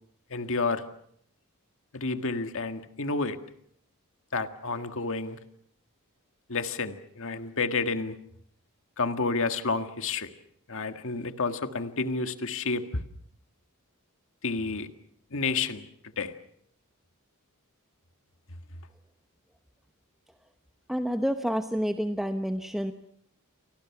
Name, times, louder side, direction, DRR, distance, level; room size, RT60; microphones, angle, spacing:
voice 1, 0.3-0.8 1.9-3.4 4.3-5.4 6.5-8.2 9.0-10.3 10.7-12.9 14.4-14.9 15.3-15.9 16.2-16.3, left 4 dB, 65° left, 8 dB, 1.8 m, -30 dB
voice 2, 20.9-22.9, equal, ahead, 6 dB, 1.0 m, -29 dB
30.0 x 24.5 x 6.0 m, 0.67 s
head